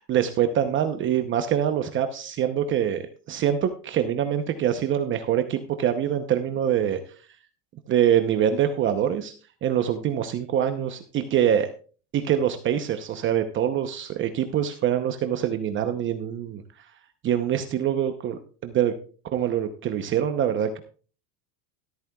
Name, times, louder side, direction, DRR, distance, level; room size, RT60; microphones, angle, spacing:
voice 1, 0.0-3.0 3.3-7.0 7.9-9.3 9.6-11.7 12.1-16.6 17.2-18.9 19.3-20.8, right 9 dB, 30° right, 7 dB, 0.8 m, -24 dB
13.5 x 12.5 x 2.3 m, 0.40 s
supercardioid pair, 140°, 38 cm